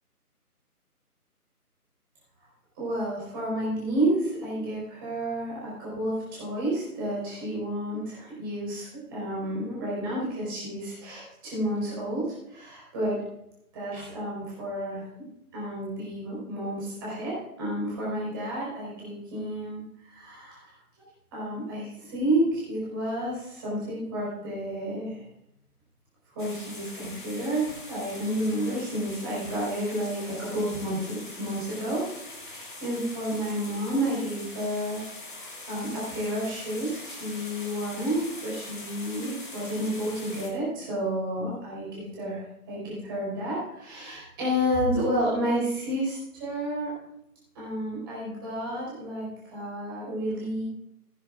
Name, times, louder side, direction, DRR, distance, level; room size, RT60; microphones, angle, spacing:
voice 1, 2.8-13.2 13.7-15.0 15.5-20.7 21.3-25.2 26.3-35.0 35.3-46.9 47.5-50.6, right 1 dB, 15° right, -6 dB, 4.5 m, -30 dB
sound 1, 26.4-40.5, left 2 dB, 30° left, 1.8 m, -42 dB
16.0 x 10.0 x 2.5 m, 0.78 s
figure-of-eight pair, 155°, 46 cm